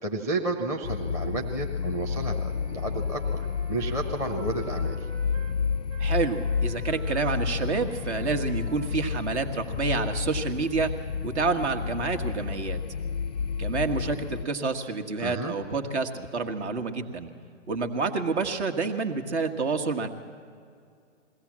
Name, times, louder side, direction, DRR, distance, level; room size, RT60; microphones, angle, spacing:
voice 1, 0.0-3.4 3.7-5.1 15.2-15.6, right 2 dB, 10° right, 1 dB, 0.7 m, -31 dB
sound 1, 0.8-14.4, left 6 dB, 35° left, 0.4 m, -31 dB
Wind instrument woodwind instrument, 2.0-5.6 5.9-10.1, right 3 dB, 80° right, 2.1 m, -49 dB
voice 2, 6.0-10.9 11.2-12.8 13.6-17.3 17.7-20.1, right 4 dB, 60° right, 7 dB, 1.7 m, -28 dB
21.5 x 16.5 x 7.5 m, 2.4 s
hypercardioid pair, 140°, 38 cm